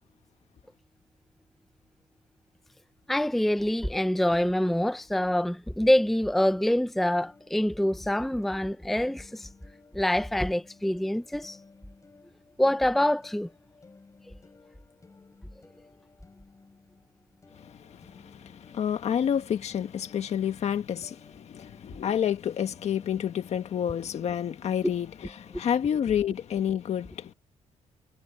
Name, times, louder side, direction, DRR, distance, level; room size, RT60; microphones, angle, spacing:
voice 1, 3.1-9.5 9.9-11.6 12.6-13.5, left 1 dB, ahead, 0.6 m, -25 dB
sound 1, 7.1-25.7, left 4 dB, 25° left, 7.7 m, -56 dB
voice 2, 17.5-27.3, left 9 dB, 55° left, 1.6 m, -29 dB
cardioid pair, 145°, 13 cm